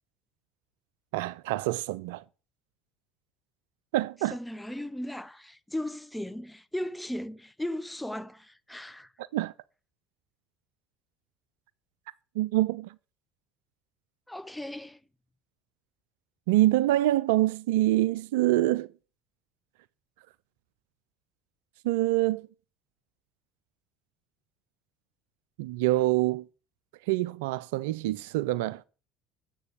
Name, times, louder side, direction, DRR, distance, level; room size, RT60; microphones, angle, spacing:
voice 1, 1.1-2.2 3.9-4.4 9.3-9.5 12.4-12.9 16.5-18.9 21.8-22.5 25.6-26.5 27.1-28.8, right 16 dB, 75° right, 0.3 m, -25 dB
voice 2, 4.3-9.1 14.3-15.0, left 1 dB, 5° left, 0.7 m, -36 dB
7.8 x 4.6 x 6.8 m
hypercardioid pair, 70°, 0 cm